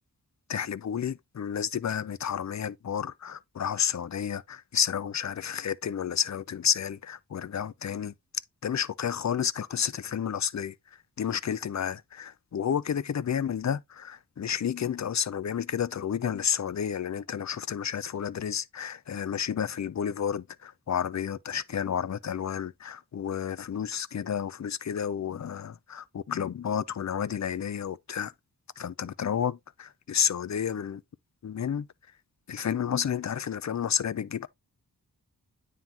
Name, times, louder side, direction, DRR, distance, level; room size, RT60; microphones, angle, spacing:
voice 1, 0.5-8.1 8.6-10.7 11.2-28.3 28.8-31.0 31.4-31.9 32.5-34.5, left 8 dB, 45° left, 0.5 m, -31 dB
9.2 x 3.8 x 2.9 m
cardioid pair, 55°, 38 cm